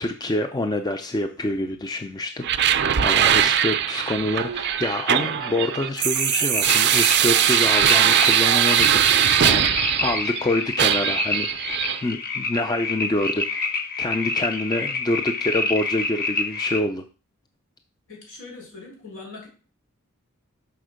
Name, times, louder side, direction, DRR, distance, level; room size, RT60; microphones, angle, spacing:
voice 1, 0.0-9.7 10.0-13.7 14.0-17.0, left 1 dB, 20° left, 7 dB, 0.4 m, -27 dB
sound 1, 1.3-7.8 9.0-9.1, left 1 dB, 80° left, 3.3 m, -48 dB
sound 2, 2.4-10.4 10.8-12.0, right 10 dB, 50° right, 0.4 m, -20 dB
sound 3, 6.0-16.8, left 3 dB, 45° left, 1.0 m, -28 dB
voice 2, 18.1-19.5, left 3 dB, 65° left, -1 dB, 4.3 m, -41 dB
5.8 x 4.3 x 6.3 m, 0.36 s
head